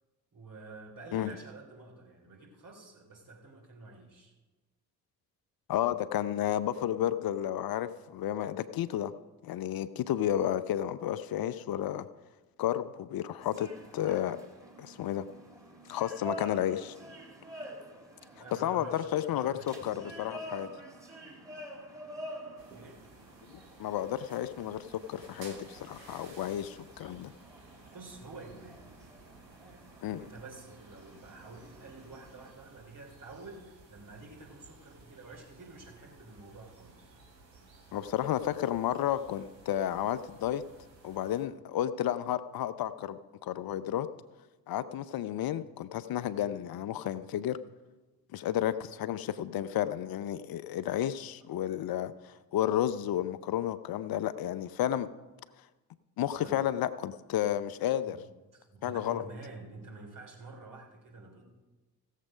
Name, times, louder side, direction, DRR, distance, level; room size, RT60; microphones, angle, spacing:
voice 1, 0.3-4.3 18.2-20.2 22.7-23.0 27.9-28.8 29.6-37.1 56.4-56.7 58.1-58.2 58.5-61.4, right 3 dB, 40° right, -1 dB, 3.6 m, -49 dB
voice 2, 5.7-9.1 9.4-12.1 12.6-14.4 14.8-15.2 15.9-16.9 18.6-20.7 23.5-27.3 30.0-30.2 37.9-40.6 41.0-44.1 44.7-47.6 48.3-55.1 56.2-58.2 58.8-59.2, left 11 dB, 45° left, 14 dB, 0.7 m, -32 dB
sound 1, 13.4-32.5, equal, 5° right, 3.0 m, -48 dB
sound 2, 22.6-41.4, right 3 dB, 90° right, 1.1 m, -56 dB
16.0 x 7.3 x 5.1 m, 1.2 s
figure-of-eight pair, 40°, 49 cm